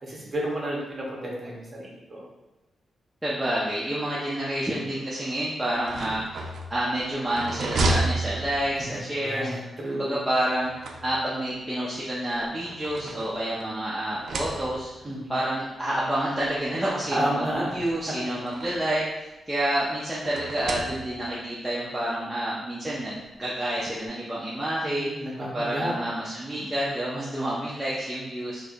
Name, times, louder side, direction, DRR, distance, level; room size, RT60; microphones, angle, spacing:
voice 1, 0.0-2.2 8.8-8.9 9.2-10.2 15.0-15.4 17.1-17.8 18.6-18.7 24.8-25.9 26.5-26.9, right 1 dB, 25° right, -4 dB, 0.9 m, -31 dB
voice 2, 3.2-6.2 6.7-9.5 9.9-17.4 17.7-25.1 25.5-28.6, right 1 dB, 10° right, -8 dB, 0.5 m, -29 dB
sound 1, 5.7-9.0 10.3-11.5 12.3-13.7 14.1-15.0 16.0-16.1 16.4-16.5 17.7-19.0 20.2-21.4, right 2 dB, 65° right, 0.4 m, -32 dB
4.5 x 2.5 x 2.4 m, 1.0 s
wide cardioid pair, 165°, 0 cm